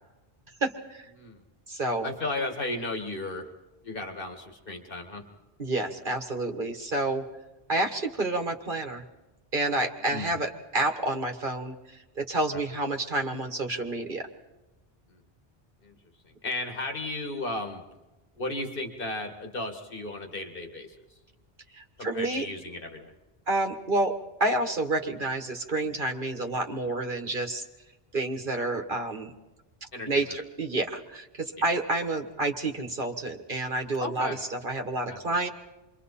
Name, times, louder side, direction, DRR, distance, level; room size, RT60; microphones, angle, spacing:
voice 1, 0.6-1.1 1.7-2.1 5.6-7.2 7.7-9.0 9.5-14.3 21.7-22.4 23.5-24.1 24.4-27.6 28.1-29.3 30.1-35.5, right 2 dB, 55° right, 4 dB, 1.5 m, -29 dB
voice 2, 2.0-3.5 3.8-5.3 10.1-10.3 15.1-15.2 15.8-16.0 16.2-17.8 18.4-21.0 22.0-23.1 29.9-30.4 34.0-34.4 35.1-35.2, left 2 dB, 60° left, 5 dB, 2.3 m, -35 dB
28.5 x 23.5 x 4.2 m, 1.1 s
omnidirectional pair, 1.0 m